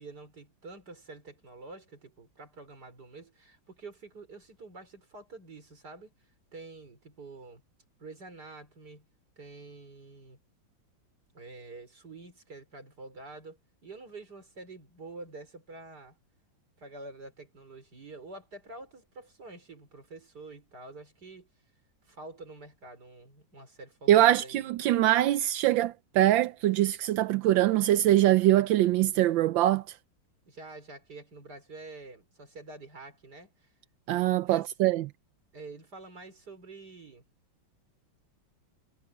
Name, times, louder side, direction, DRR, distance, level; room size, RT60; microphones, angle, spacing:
voice 1, 0.0-6.1 6.5-7.6 8.0-9.1 9.4-10.4 11.3-16.2 16.8-21.5 22.0-24.7 30.5-33.7 34.4-34.7 35.5-37.2, right 3 dB, 55° right, 5.5 m, -47 dB
voice 2, 24.1-29.8 34.1-35.1, right 13 dB, 80° right, 1.4 m, -23 dB
omnidirectional pair, 2.1 m